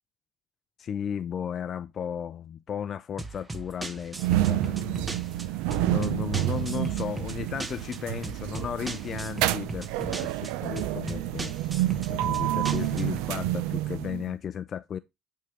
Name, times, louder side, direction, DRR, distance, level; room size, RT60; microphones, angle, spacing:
voice 1, 0.8-5.6 5.8-11.5 12.1-15.0, left 8 dB, 45° left, 0.4 m, -35 dB
sound 1, 3.2-13.3, right 2 dB, 20° right, 0.9 m, -39 dB
sound 2, 4.2-14.3, right 14 dB, 80° right, 0.5 m, -29 dB
10.5 x 3.7 x 3.1 m
supercardioid pair, 85°, 0 cm